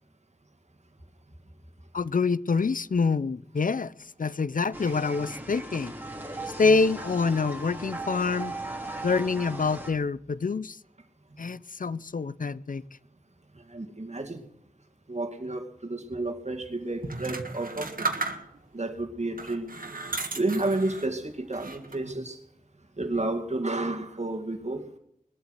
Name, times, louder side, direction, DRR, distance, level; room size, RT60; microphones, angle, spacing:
voice 1, 1.9-5.9 6.6-8.5 9.0-10.8 11.4-12.8, left 4 dB, 70° left, 0.5 m, -26 dB
sound 1, 4.7-9.9, right 2 dB, 15° right, 3.3 m, -38 dB
voice 2, 13.7-14.4 15.1-18.1 18.7-19.7 20.3-22.4 23.0-24.9, right 2 dB, 55° right, 2.2 m, -31 dB
sound 2, 17.0-18.8 19.3-21.1 21.5-22.2, right 3 dB, 85° right, 1.8 m, -34 dB
21.0 x 8.2 x 8.1 m
wide cardioid pair, 45°, 14 cm